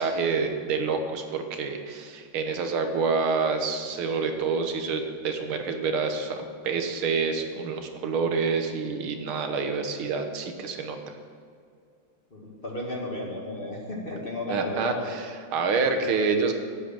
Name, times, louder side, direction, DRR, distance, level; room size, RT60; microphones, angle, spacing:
voice 1, 0.0-11.0 14.5-16.5, right 4 dB, 85° right, 6 dB, 2.0 m, -27 dB
voice 2, 12.3-15.1 15.8-16.1, left 1 dB, 30° left, 0 dB, 1.8 m, -34 dB
12.0 x 8.1 x 8.8 m, 2.2 s
omnidirectional pair, 2.3 m